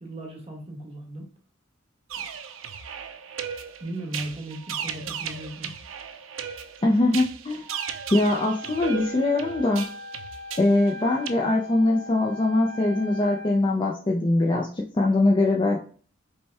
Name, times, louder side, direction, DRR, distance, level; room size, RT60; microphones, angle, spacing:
voice 1, 0.0-1.3 2.1-2.3 3.8-5.8, right 1 dB, 30° right, 0 dB, 1.2 m, -37 dB
sound 1, 2.1-11.3, right 7 dB, 75° right, 0.4 m, -36 dB
voice 2, 6.8-7.6 8.1-9.9 10.6-15.8, left 2 dB, 25° left, -1 dB, 0.4 m, -22 dB
Wind instrument woodwind instrument, 7.7-13.6, left 1 dB, 55° right, 1.0 m, -40 dB
5.3 x 2.2 x 3.4 m, 0.43 s
head